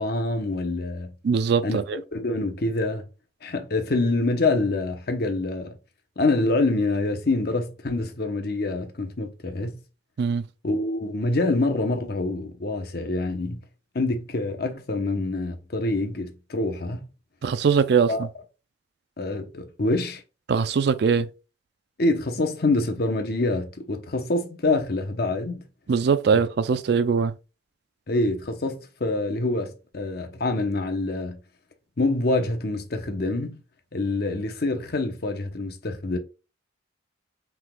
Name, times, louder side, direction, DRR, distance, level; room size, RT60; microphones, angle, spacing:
voice 1, 0.0-1.1 1.6-3.0 3.4-5.7 6.2-9.8 10.6-13.6 13.9-17.1 18.1-18.3 19.2-20.2 22.0-25.6 26.3-26.4 28.1-31.4 32.0-33.6 33.9-36.2, left 2 dB, 55° left, 0.8 m, -26 dB
voice 2, 1.2-2.0 10.2-10.4 17.4-18.1 20.5-21.3 25.9-27.3, right 6 dB, 60° right, 0.4 m, -21 dB
5.8 x 3.6 x 2.2 m
head